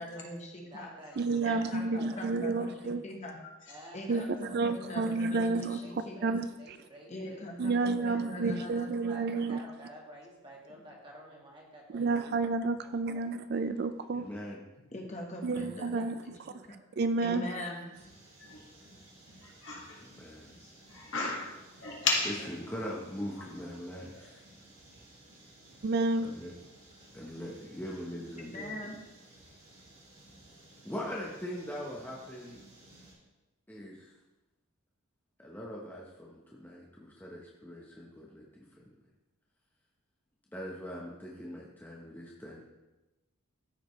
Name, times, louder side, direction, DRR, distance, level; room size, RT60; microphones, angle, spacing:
voice 1, 0.0-0.9 1.4-3.4 3.9-6.2 7.1-9.0 14.9-16.8 17.2-17.9 28.4-29.0, left 1 dB, 30° left, 1 dB, 1.1 m, -42 dB
voice 2, 0.6-2.2 2.5-2.7 3.7-8.7 9.0-12.1 13.1-13.2 16.0-16.1, right 1 dB, 25° right, -2 dB, 1.6 m, -51 dB
voice 3, 1.2-3.0 4.1-5.8 6.2-6.8 7.6-9.6 11.9-14.3 15.4-16.2 17.0-17.5 25.8-26.3, right 3 dB, 50° right, 11 dB, 0.3 m, -30 dB
voice 4, 14.1-14.6 20.0-20.7 22.6-24.4 26.2-26.5 27.1-28.7 30.8-32.6 33.7-34.1 35.4-38.8 40.5-42.6, equal, 10° left, -3 dB, 0.8 m, -42 dB
sound 1, 17.9-33.1, right 1 dB, 75° right, 3.0 m, -56 dB
voice 5, 19.4-20.0 20.9-21.5 21.8-22.5 23.4-23.5 24.1-24.3, left 3 dB, 60° left, -2 dB, 1.9 m, -33 dB
13.5 x 5.1 x 3.2 m, 1.1 s
head